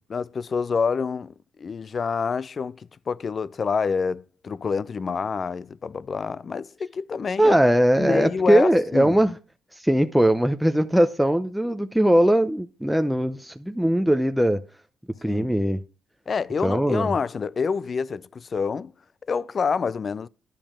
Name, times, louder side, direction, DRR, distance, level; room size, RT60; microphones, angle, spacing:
voice 1, 0.1-7.6 8.0-9.2 15.3-15.5 16.3-18.9 19.3-20.3, left 5 dB, 40° left, 0.4 m, -27 dB
voice 2, 7.4-9.3 9.8-14.6 15.2-15.8 16.6-17.1, right 1 dB, 5° right, 0.6 m, -20 dB
11.0 x 5.2 x 7.2 m
cardioid pair, 90°, 0 cm